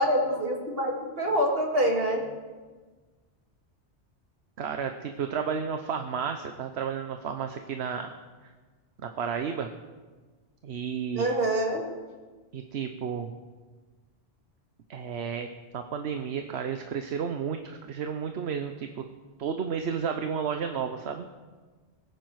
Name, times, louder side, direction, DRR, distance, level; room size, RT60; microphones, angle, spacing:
voice 1, 0.0-2.2 11.2-11.8, equal, 60° right, 0 dB, 2.5 m, -26 dB
voice 2, 4.6-8.1 9.0-9.7 10.6-11.3 12.5-13.3 14.9-15.5 15.7-18.9 19.4-21.3, right 7 dB, 75° right, 6 dB, 1.1 m, -32 dB
22.0 x 9.6 x 4.7 m, 1.4 s
omnidirectional pair, 1.1 m